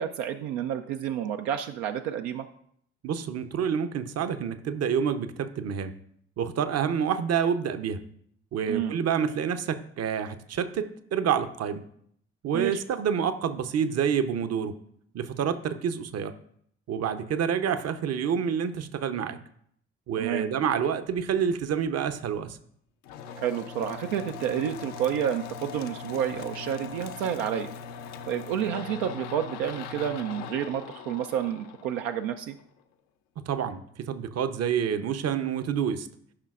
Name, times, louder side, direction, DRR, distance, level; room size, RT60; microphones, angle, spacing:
voice 1, 0.0-2.5 8.7-8.9 12.5-12.8 20.2-20.5 23.4-27.7 28.3-32.5, right 9 dB, 85° right, 6 dB, 0.5 m, -30 dB
voice 2, 3.0-5.9 6.4-8.0 8.5-11.8 12.4-14.8 15.1-16.3 16.9-19.4 20.1-22.6 33.5-36.1, right 7 dB, 55° right, 11 dB, 0.8 m, -28 dB
sound 1, 23.0-32.6, left 6 dB, 85° left, 0.6 m, -40 dB
13.0 x 5.7 x 2.4 m, 0.66 s
hypercardioid pair, 45°, 30 cm